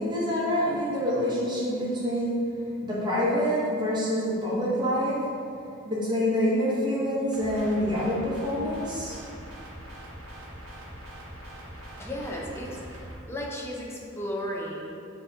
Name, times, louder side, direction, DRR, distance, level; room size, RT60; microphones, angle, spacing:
voice 1, 0.0-5.2 5.8-9.2, equal, 20° right, -7 dB, 0.9 m, -26 dB
sound 1, 7.3-13.1, equal, 80° right, 0.9 m, -43 dB
voice 2, 11.9-14.9, equal, 15° left, -3 dB, 0.5 m, -35 dB
6.1 x 2.8 x 2.7 m, 2.5 s
head